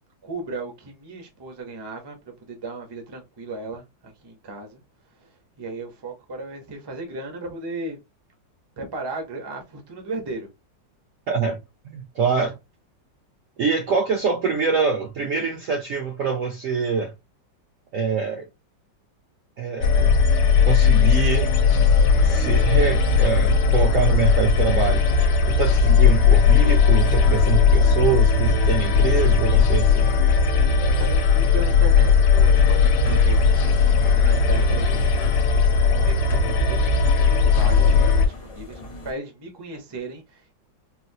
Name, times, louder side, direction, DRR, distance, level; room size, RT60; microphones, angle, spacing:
voice 1, 0.2-4.8 5.2-5.3 5.6-8.0 8.8-10.5 31.0-35.5 35.9-40.5, right 2 dB, 35° right, 0.4 m, -36 dB
voice 2, 11.3-11.6 11.8-12.6 13.6-17.1 17.9-18.5 19.6-20.1 20.6-21.5 22.2-25.1 25.5-30.2, right 5 dB, 70° right, 0.7 m, -25 dB
sound 1, 19.8-38.3, left 5 dB, 85° left, 1.3 m, -17 dB
sound 2, 32.5-39.1, left 1 dB, 35° left, 0.6 m, -37 dB
4.1 x 2.0 x 2.7 m
omnidirectional pair, 2.0 m